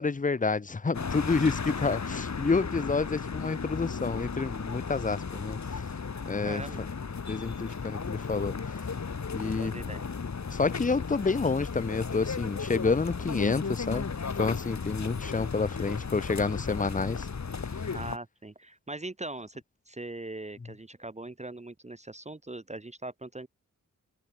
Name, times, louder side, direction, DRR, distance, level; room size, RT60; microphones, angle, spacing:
voice 1, 0.0-5.8 6.2-6.6 7.3-8.8 9.3-9.7 10.5-17.3 17.8-17.9, left 4 dB, 25° left, 0.8 m, -29 dB
sound 1, 0.9-18.2, left 5 dB, 55° left, 3.1 m, -35 dB
voice 2, 6.4-6.8 9.4-10.1 17.9-23.5, right 2 dB, 20° right, 1.3 m, -41 dB
cardioid pair, 45°, 34 cm